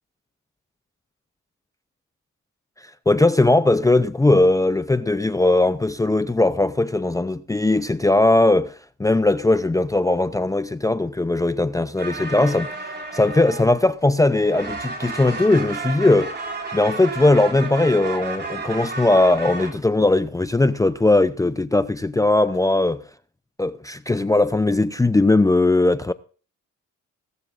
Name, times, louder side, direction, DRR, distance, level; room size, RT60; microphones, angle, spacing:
voice 1, 3.1-8.7 9.0-12.7 13.1-16.4 16.7-23.0 23.6-26.1, left 2 dB, 10° left, 0.6 m, -19 dB
sound 1, 12.0-14.1 14.3-19.7, right 4 dB, 35° right, 4.0 m, -32 dB
19.5 x 13.5 x 2.6 m
cardioid pair, 90°, 30 cm